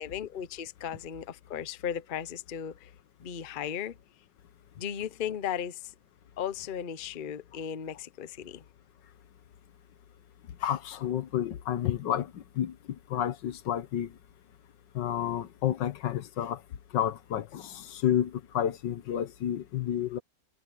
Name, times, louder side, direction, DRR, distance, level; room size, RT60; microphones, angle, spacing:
voice 1, 0.0-2.9 3.2-4.0 4.8-5.8 6.4-8.6, left 9 dB, 45° left, 0.7 m, -36 dB
voice 2, 10.6-12.7 13.1-14.1 14.9-16.6 16.9-20.2, left 10 dB, 80° left, 1.6 m, -30 dB
omnidirectional pair, 1.9 m